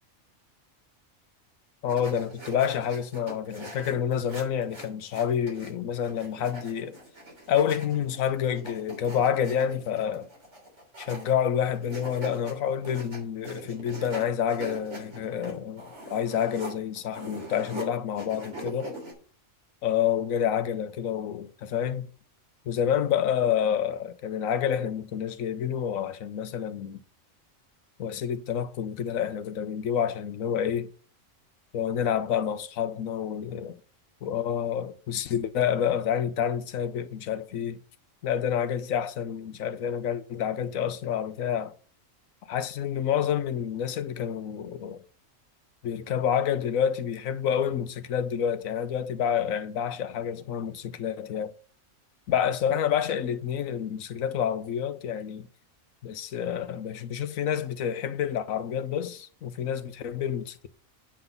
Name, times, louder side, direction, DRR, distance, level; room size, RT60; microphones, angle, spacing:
voice 1, 1.8-7.0 7.5-10.3 11.0-19.0 19.8-22.1 22.7-27.0 28.0-30.9 31.7-33.7 34.2-37.8 38.2-41.7 42.5-45.0 45.8-51.5 52.3-55.5 56.0-60.6, left 9 dB, 85° left, 1.2 m, -28 dB
sound 1, 1.9-5.7 6.0-11.4 11.7-12.5 12.8-17.8 18.1-19.1, right 1 dB, 60° right, 3.5 m, -42 dB
8.9 x 5.9 x 5.3 m
omnidirectional pair, 1.4 m